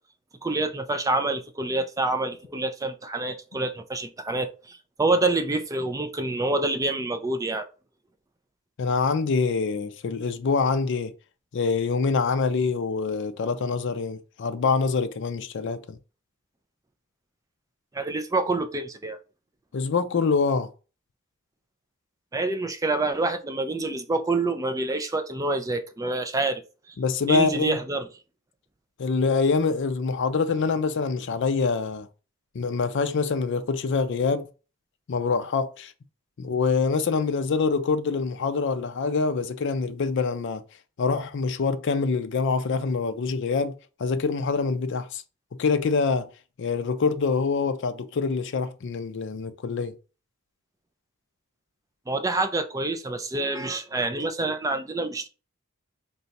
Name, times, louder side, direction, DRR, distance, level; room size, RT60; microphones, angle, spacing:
voice 1, 0.4-7.6 17.9-19.2 22.3-26.6 27.3-28.1 52.1-55.3, right 2 dB, 15° right, 0.4 m, -27 dB
voice 2, 8.8-11.1 11.5-16.0 19.7-20.7 27.0-27.8 29.0-32.1 32.5-34.5 35.1-35.9 36.4-40.6 41.0-43.7 44.0-45.2 45.6-46.3 46.6-49.9, left 4 dB, 55° left, 0.4 m, -25 dB
3.9 x 2.3 x 4.0 m
head